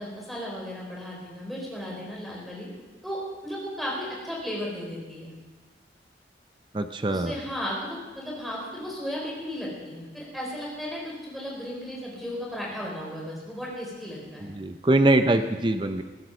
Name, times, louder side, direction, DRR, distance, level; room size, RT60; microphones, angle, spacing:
voice 1, 0.0-2.7 3.0-5.3 7.1-14.5 15.3-15.4, equal, ahead, -4 dB, 4.6 m, -35 dB
voice 2, 6.7-7.3 14.5-16.0, right 2 dB, 25° right, 8 dB, 0.6 m, -22 dB
20.5 x 10.5 x 5.5 m, 1.3 s
head